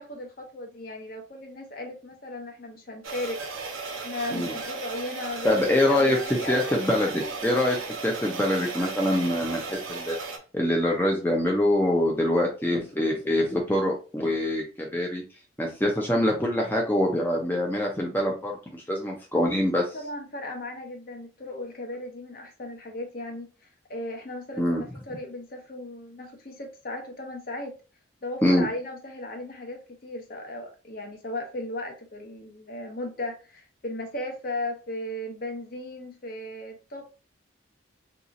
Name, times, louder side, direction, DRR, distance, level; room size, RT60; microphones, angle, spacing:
voice 1, 0.0-3.4 3.9-7.3 19.9-23.5 23.9-27.7 28.2-37.1, left 1 dB, 45° left, 3 dB, 0.7 m, -36 dB
sound 1, 3.0-10.4, right 4 dB, 85° right, 0.7 m, -36 dB
voice 2, 5.4-6.2 6.5-7.8 8.0-10.2 10.5-15.2 15.6-19.9 24.6-24.8 28.4-28.7, left 1 dB, 10° left, -1 dB, 0.5 m, -24 dB
2.8 x 2.4 x 3.8 m, 0.34 s
head